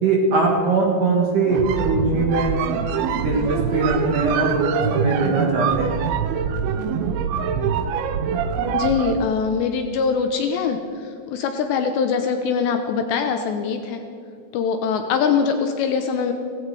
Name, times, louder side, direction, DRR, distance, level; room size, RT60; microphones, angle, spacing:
voice 1, 0.0-2.6 3.1-5.9, right 3 dB, 55° right, -1 dB, 2.4 m, -21 dB
sound 1, 1.4-9.3, right 7 dB, 75° right, 2.8 m, -24 dB
voice 2, 8.7-14.0 14.5-16.3, left 6 dB, 85° left, 6 dB, 2.6 m, -23 dB
17.5 x 16.5 x 4.8 m, 2.5 s
omnidirectional pair, 5.9 m